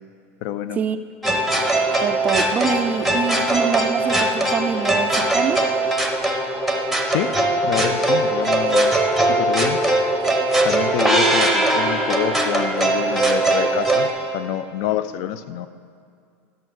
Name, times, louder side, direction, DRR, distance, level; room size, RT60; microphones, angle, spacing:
voice 1, 0.4-0.8 7.1-7.3 7.6-9.8 10.6-15.7, left 11 dB, 50° left, 13 dB, 0.4 m, -27 dB
sound 1, 1.2-14.1, right 1 dB, ahead, 0.7 m, -20 dB
voice 2, 2.0-5.6, right 7 dB, 20° right, 10 dB, 0.3 m, -24 dB
11.0 x 6.2 x 6.2 m, 2.3 s
supercardioid pair, 155°, 7 cm